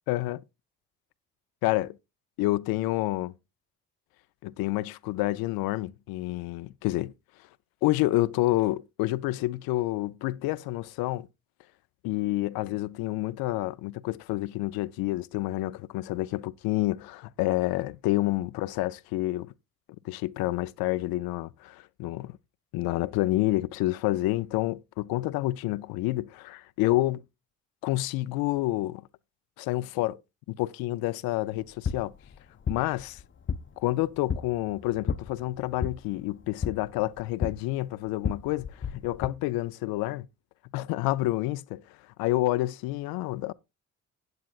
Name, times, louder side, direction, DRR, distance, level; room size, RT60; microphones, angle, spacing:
voice 1, 0.1-0.4 1.6-2.0 2.4-3.3 4.4-7.1 7.8-11.3 12.0-19.5 20.0-22.4 22.7-27.2 27.8-29.0 29.6-30.2 30.5-32.1 32.7-33.2 33.8-40.3 40.7-41.8 42.2-43.5, left 17 dB, 80° left, 0.5 m, -28 dB
sound 1, 31.5-39.3, left 6 dB, 35° left, 0.7 m, -35 dB
16.0 x 8.3 x 2.3 m
supercardioid pair, 50°, 35 cm